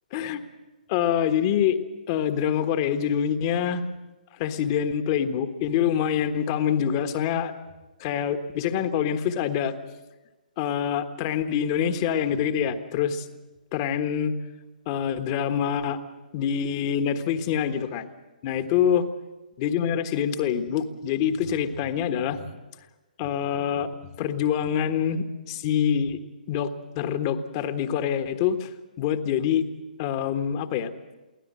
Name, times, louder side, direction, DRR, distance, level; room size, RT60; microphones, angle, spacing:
voice 1, 0.1-0.4 0.9-1.8 2.1-3.8 4.4-7.5 8.0-9.7 10.6-13.3 13.7-14.3 14.9-16.0 16.3-18.1 18.4-19.0 19.6-22.5 23.2-23.9 24.2-26.2 26.5-28.7 29.0-29.7 30.0-30.9, left 8 dB, 30° left, 9 dB, 1.4 m, -25 dB
24.0 x 16.5 x 7.6 m, 1.1 s
figure-of-eight pair, 125°, 5 cm